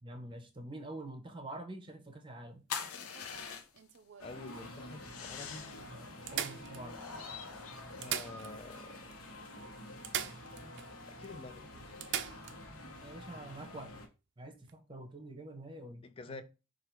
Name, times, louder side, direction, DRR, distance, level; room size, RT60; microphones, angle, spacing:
voice 1, 0.0-2.6 5.8-7.0 13.0-14.0 14.4-16.4, right 1 dB, 20° right, 0.8 m, -46 dB
sound 1, 2.7-4.0 5.0-5.9 6.8-8.5, left 7 dB, 90° left, 0.7 m, -44 dB
sound 2, 2.8-4.4 5.1-5.2 5.4-5.5 6.3-7.3 7.9-8.9 9.1-9.2 10.0-10.9 11.2-11.3 12.0-12.6 14.6-14.7, right 9 dB, 55° right, 0.4 m, -40 dB
sound 3, 4.2-14.1, left 1 dB, 70° left, 1.1 m, -48 dB
voice 2, 4.2-5.7 8.0-9.0 11.2-11.7 16.0-16.4, left 3 dB, 25° left, 0.4 m, -48 dB
4.8 x 2.5 x 4.5 m
head